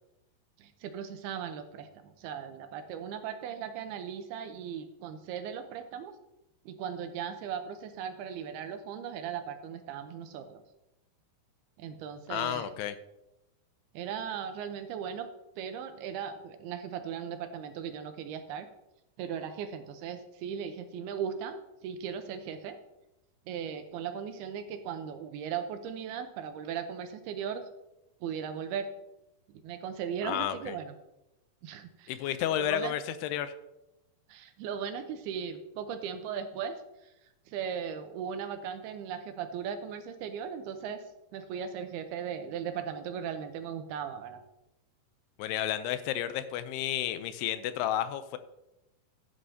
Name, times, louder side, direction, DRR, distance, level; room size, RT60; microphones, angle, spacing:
voice 1, 0.6-6.1 6.7-10.6 11.8-12.7 13.9-15.3 15.6-18.7 19.2-22.8 23.5-27.7 28.2-28.9 29.5-30.9 31.6-32.1 32.6-32.9 34.3-36.8 37.0-37.1 37.5-41.0 41.3-44.4, right 7 dB, 80° right, 8 dB, 2.7 m, -37 dB
voice 2, 12.3-13.0 30.2-30.8 32.1-33.5 45.4-48.4, left 11 dB, 85° left, 11 dB, 2.6 m, -31 dB
14.0 x 9.6 x 2.8 m, 0.91 s
omnidirectional pair, 4.7 m